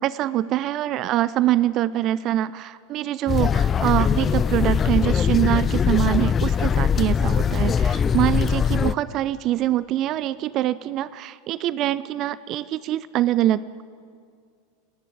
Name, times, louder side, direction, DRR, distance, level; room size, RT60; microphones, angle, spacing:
voice 1, 0.0-13.8, right 13 dB, 40° right, 18 dB, 0.4 m, -24 dB
sound 1, 3.3-8.9, left 7 dB, 25° left, 0.4 m, -21 dB
29.0 x 10.5 x 8.7 m, 2.2 s
figure-of-eight pair, 85°, 0 cm